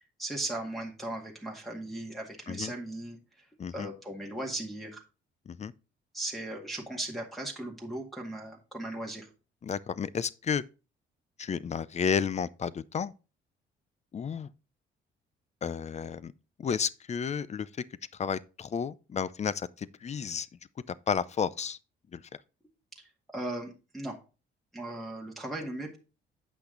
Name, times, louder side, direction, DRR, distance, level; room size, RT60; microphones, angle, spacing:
voice 1, 0.2-5.0 6.1-9.3 23.0-24.2 24.7-26.0, right 1 dB, ahead, 1.9 m, -37 dB
voice 2, 9.6-10.6 11.4-13.1 14.1-14.5 15.6-16.3 16.6-17.7 18.2-20.5 21.1-21.8 22.1-22.2, left 7 dB, 35° left, 0.5 m, -32 dB
8.5 x 5.7 x 3.9 m
cardioid pair, 90°, 20 cm